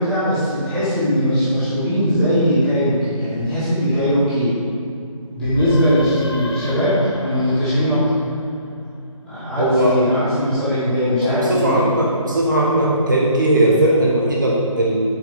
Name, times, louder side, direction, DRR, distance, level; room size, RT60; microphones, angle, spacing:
voice 1, 0.0-4.5 5.3-8.2 9.2-11.9, equal, 5° left, -14 dB, 1.5 m, -19 dB
sound 1, 5.4-9.0, left 3 dB, 45° left, 0.9 m, -33 dB
voice 2, 9.6-10.0 11.2-15.1, right 1 dB, 35° right, -3 dB, 1.2 m, -18 dB
7.4 x 6.7 x 5.1 m, 2.5 s
figure-of-eight pair, 160°, 18 cm